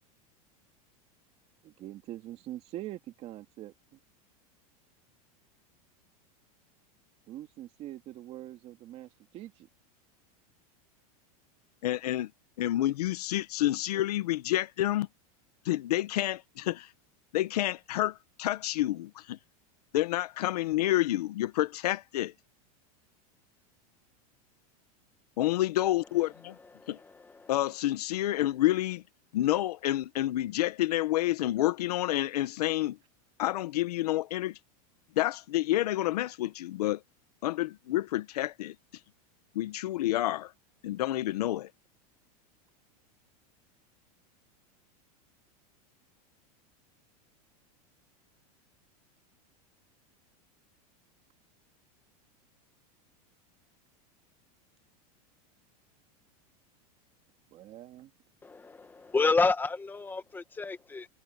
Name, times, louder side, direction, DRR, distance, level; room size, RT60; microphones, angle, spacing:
voice 1, 1.6-4.0 7.3-9.7 57.5-58.1, right 14 dB, 35° right, 2.5 m, -44 dB
voice 2, 11.8-12.3 12.6-15.1 15.6-16.9 17.3-19.4 19.9-22.3 25.4-26.5 26.9-27.0 27.5-29.0 29.3-33.0 33.4-34.6 35.2-37.0 37.4-38.7 39.5-40.5 40.8-41.7, left 15 dB, 85° left, 1.3 m, -29 dB
voice 3, 26.7-27.5 58.4-61.1, left 4 dB, 10° left, 1.8 m, -30 dB
supercardioid pair, 160°, 19 cm